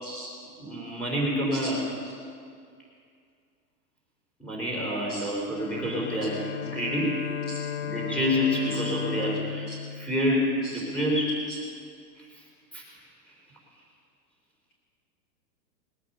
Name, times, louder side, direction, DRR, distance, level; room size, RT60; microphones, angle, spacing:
voice 1, 0.0-0.3 1.5-1.7 5.1-5.3 7.5-7.6 8.7-8.8 9.7-9.8 10.6-10.8 11.5-11.6, right 2 dB, 20° left, 2 dB, 1.0 m, -40 dB
voice 2, 0.6-1.8 4.4-6.4 6.6-7.2 7.8-11.4 12.2-12.3 12.7-12.8, equal, 5° left, -4 dB, 3.6 m, -28 dB
Bowed string instrument, 5.5-11.0, left 8 dB, 45° left, 1.0 m, -35 dB
20.5 x 8.5 x 5.6 m, 2.3 s
hypercardioid pair, 150°, 49 cm